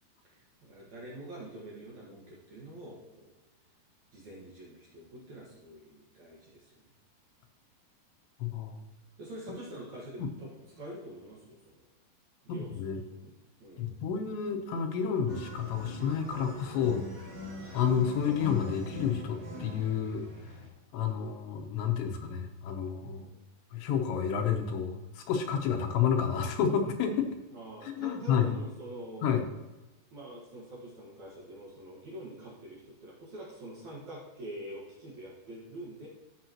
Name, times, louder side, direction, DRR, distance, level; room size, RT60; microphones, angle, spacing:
voice 1, 0.2-3.3 4.1-6.8 9.2-11.8 12.4-13.3 13.6-13.9 17.5-17.7 23.1-23.4 27.5-29.2 30.1-36.1, right 1 dB, 60° right, -5 dB, 2.1 m, -46 dB
voice 2, 8.4-8.8 10.2-10.3 12.5-13.0 13.8-17.0 17.7-20.3 20.9-23.3 23.7-27.3 27.8-28.6 29.2-29.5, left 7 dB, 80° left, 4 dB, 3.1 m, -30 dB
sound 1, 15.3-20.7, left 1 dB, 40° right, 2.1 m, -42 dB
13.5 x 6.1 x 2.9 m, 1.1 s
omnidirectional pair, 5.1 m